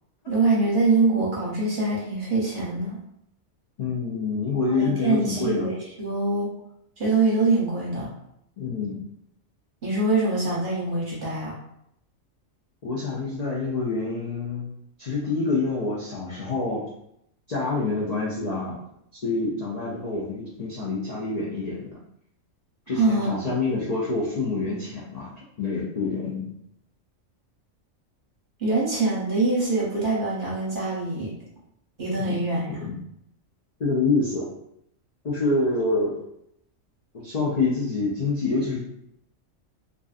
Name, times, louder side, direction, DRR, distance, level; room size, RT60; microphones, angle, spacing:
voice 1, 0.3-3.0 4.7-6.5 7.0-8.1 9.8-11.5 22.9-23.3 28.6-31.3 32.0-32.6, right 3 dB, 45° right, -6 dB, 0.8 m, -24 dB
voice 2, 3.8-5.7 8.6-9.0 12.8-14.7 15.0-16.9 17.5-18.8 19.2-22.0 22.9-26.5 32.3-32.4 32.7-33.0 33.8-34.5 35.2-36.2 37.1-38.8, left 3 dB, 85° left, -6 dB, 0.3 m, -27 dB
2.5 x 2.4 x 2.4 m, 0.76 s
omnidirectional pair, 1.4 m